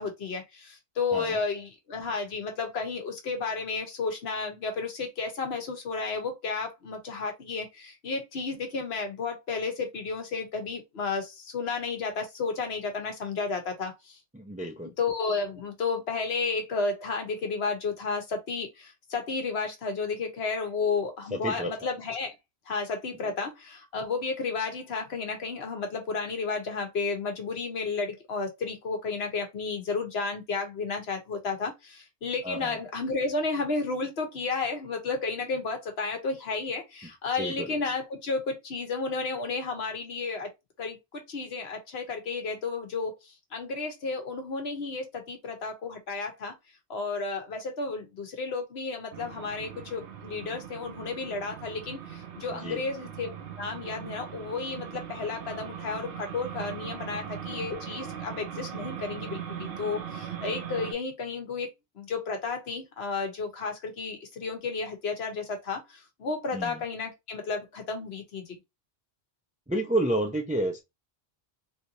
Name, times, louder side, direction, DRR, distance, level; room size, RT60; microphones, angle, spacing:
voice 1, 0.0-14.2 15.0-22.3 22.7-40.5 40.8-43.2 43.5-46.5 46.9-61.7 62.0-68.5, left 4 dB, 75° left, 1.2 m, -32 dB
voice 2, 14.3-14.9 21.3-21.9 32.4-32.8 37.4-37.8 52.6-52.8 66.5-66.8 69.7-70.8, right 1 dB, 10° right, 0.4 m, -30 dB
sound 1, 49.1-60.9, right 8 dB, 70° right, 0.8 m, -40 dB
3.3 x 2.8 x 2.7 m
omnidirectional pair, 1.1 m